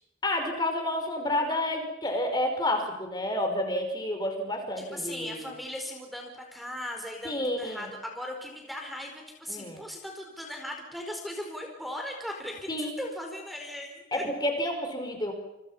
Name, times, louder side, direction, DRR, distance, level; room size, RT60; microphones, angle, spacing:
voice 1, 0.2-5.5 7.2-7.9 9.5-9.8 12.7-12.9 14.1-15.3, left 1 dB, 25° left, 4 dB, 5.3 m, -30 dB
voice 2, 4.8-14.2, left 1 dB, ahead, 1 dB, 4.9 m, -38 dB
29.5 x 25.0 x 5.8 m, 0.91 s
head